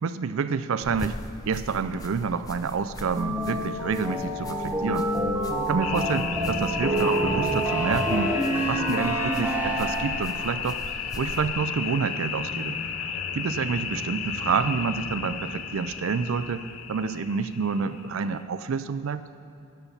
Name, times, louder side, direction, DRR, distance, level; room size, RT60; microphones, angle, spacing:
voice 1, 0.0-5.1 5.7-8.3 8.7-12.8 13.3-19.2, right 5 dB, 70° right, 12 dB, 0.4 m, -28 dB
sound 1, 0.8-11.5, left 1 dB, 15° left, 0.4 m, -41 dB
sound 2, 3.2-10.4, right 1 dB, 10° right, 1.0 m, -27 dB
sound 3, 5.8-18.4, left 7 dB, 85° left, 0.6 m, -33 dB
10.5 x 7.1 x 5.6 m, 2.7 s
head